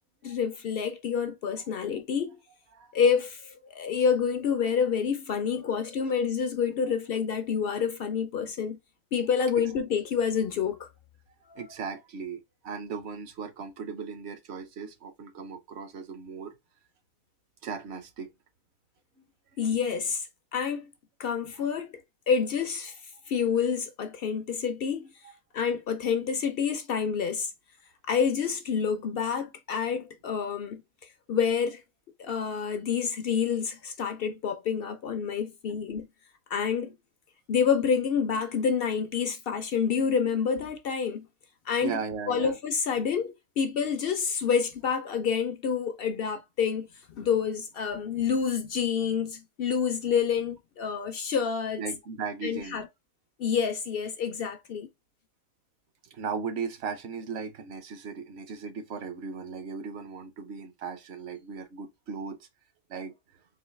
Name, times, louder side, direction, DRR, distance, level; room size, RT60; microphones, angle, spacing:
voice 1, 0.2-2.4 2.9-8.8 9.1-10.9 11.5-11.6 19.6-20.3 20.5-20.9 21.2-21.9 22.3-23.0 23.3-25.1 25.5-27.5 28.1-30.8 31.3-31.8 32.2-36.1 36.5-36.9 37.5-41.3 41.7-41.9 42.3-46.9 47.1-51.8 52.4-52.9 53.4-54.9, left 6 dB, 65° left, 0.5 m, -28 dB
voice 2, 11.6-16.5 17.6-18.3 19.2-19.3 25.2-25.3 35.7-35.8 41.8-42.6 51.8-52.8 56.0-62.5 62.9-63.1, right 5 dB, 60° right, 0.8 m, -37 dB
4.0 x 2.8 x 3.1 m
omnidirectional pair, 1.5 m